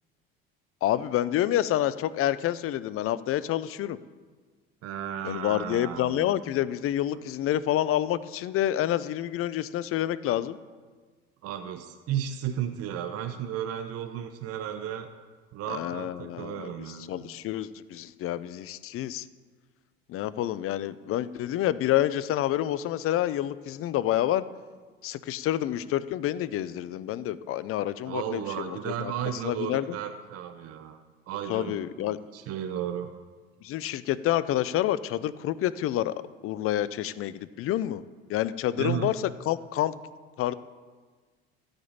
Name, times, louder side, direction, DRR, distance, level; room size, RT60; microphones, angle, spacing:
voice 1, 0.8-4.0 5.2-10.6 15.7-19.3 20.1-24.4 25.0-29.1 29.4-30.0 31.5-32.2 33.6-36.1 36.4-38.0 38.3-39.2 39.5-40.0 40.4-40.5, left 13 dB, 50° left, 16 dB, 0.6 m, -28 dB
voice 2, 4.8-6.4 7.1-7.2 11.4-15.1 15.5-17.2 28.0-31.0 31.3-33.1 38.8-39.1, right 10 dB, 55° right, 7 dB, 0.9 m, -34 dB
13.5 x 5.3 x 8.7 m, 1.4 s
hypercardioid pair, 65°, 29 cm